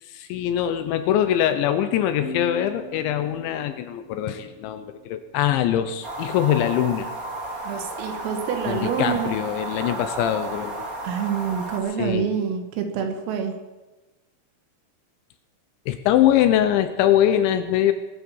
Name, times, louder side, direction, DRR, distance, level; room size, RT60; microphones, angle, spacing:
voice 1, 0.0-7.1 8.7-10.9 12.0-12.3 15.9-17.9, left 11 dB, 80° left, 10 dB, 2.8 m, -22 dB
sound 1, 2.2-5.6, left 3 dB, 55° left, 4.4 m, -40 dB
sound 2, 6.0-11.8, right 2 dB, 45° right, 1.1 m, -33 dB
voice 2, 7.6-9.3 11.0-13.6, right 7 dB, 85° right, 6 dB, 4.3 m, -27 dB
21.5 x 8.4 x 7.2 m, 1.1 s
omnidirectional pair, 5.8 m